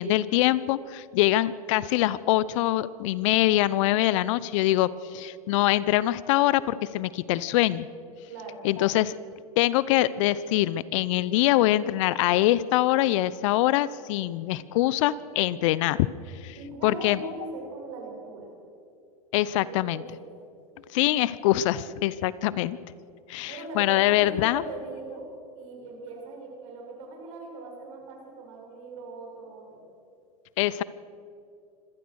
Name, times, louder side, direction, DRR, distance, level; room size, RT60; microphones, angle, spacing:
voice 1, 0.0-7.9 8.6-9.1 9.6-16.1 16.4-16.5 16.8-17.2 19.3-20.0 20.9-22.8 23.3-24.6 30.6-30.8, left 15 dB, 60° left, 19 dB, 0.8 m, -24 dB
voice 2, 8.3-8.7 16.6-18.5 19.6-20.3 23.5-25.3 25.5-29.8, right 3 dB, 60° right, 0 dB, 7.5 m, -40 dB
25.5 x 17.5 x 6.4 m, 2.5 s
hypercardioid pair, 105°, 19 cm